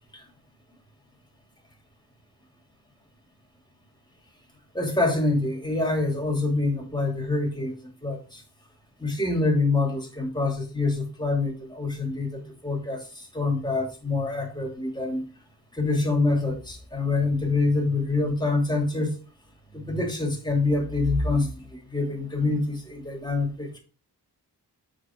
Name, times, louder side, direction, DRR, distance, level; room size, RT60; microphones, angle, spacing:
voice 1, 4.7-7.8 8.0-8.4 9.0-15.3 15.8-19.1 19.7-23.8, left 3 dB, 10° left, 2.6 m, -26 dB
7.3 x 4.7 x 4.5 m
wide cardioid pair, 75°, 41 cm